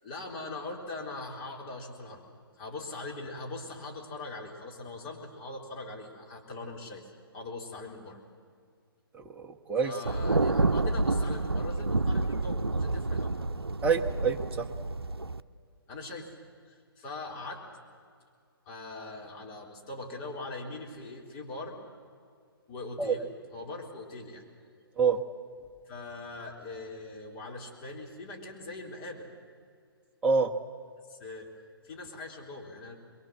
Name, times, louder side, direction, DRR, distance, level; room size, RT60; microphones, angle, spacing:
voice 1, 0.0-2.2 2.6-7.1 7.3-8.2 9.8-13.4 15.9-16.3 16.7-17.6 18.7-21.8 22.7-24.4 25.9-29.3 31.1-31.5 31.8-33.0, left 2 dB, 30° left, -1 dB, 3.9 m, -41 dB
voice 2, 9.1-9.9 13.8-14.7 23.0-23.2 25.0-25.2 30.2-30.5, right 5 dB, 10° right, 1 dB, 1.2 m, -27 dB
Thunder, 10.1-15.4, right 2 dB, 85° right, 0.6 m, -29 dB
23.5 x 22.5 x 7.8 m, 2.2 s
figure-of-eight pair, 130°, 13 cm